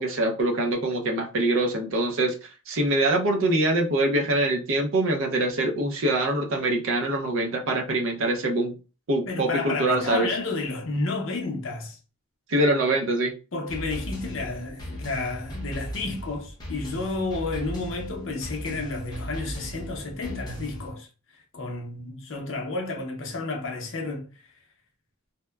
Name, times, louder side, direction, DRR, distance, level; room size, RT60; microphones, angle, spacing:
voice 1, 0.0-2.3 2.7-8.7 9.1-10.3 12.5-13.3, right 1 dB, 60° right, 0.5 m, -24 dB
voice 2, 9.3-12.0 13.5-21.1 21.5-24.3, left 3 dB, 60° left, 0.6 m, -31 dB
sound 1, 13.7-20.9, equal, 20° left, 0.7 m, -37 dB
2.8 x 2.1 x 2.2 m
head